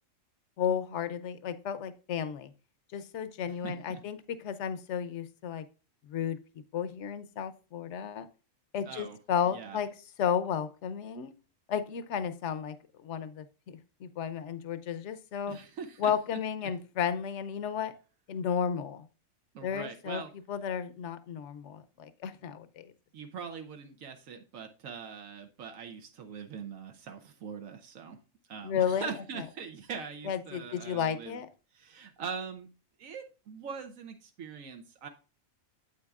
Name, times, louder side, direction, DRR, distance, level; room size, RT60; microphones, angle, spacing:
voice 1, 0.6-2.5 2.9-5.6 6.0-6.4 6.7-8.3 8.7-9.9 10.2-11.3 11.7-12.8 13.0-15.6 16.0-17.9 18.3-19.1 19.6-20.2 20.5-22.9 28.6-29.1 30.3-31.5, left 8 dB, 65° left, 13 dB, 1.0 m, -33 dB
voice 2, 3.5-4.0 8.8-9.2 9.5-9.8 15.5-16.4 19.5-20.3 23.1-28.2 28.5-31.4 31.7-32.7 33.0-35.1, right 6 dB, 80° right, 5 dB, 1.2 m, -42 dB
8.8 x 8.1 x 2.4 m, 0.34 s
omnidirectional pair, 1.4 m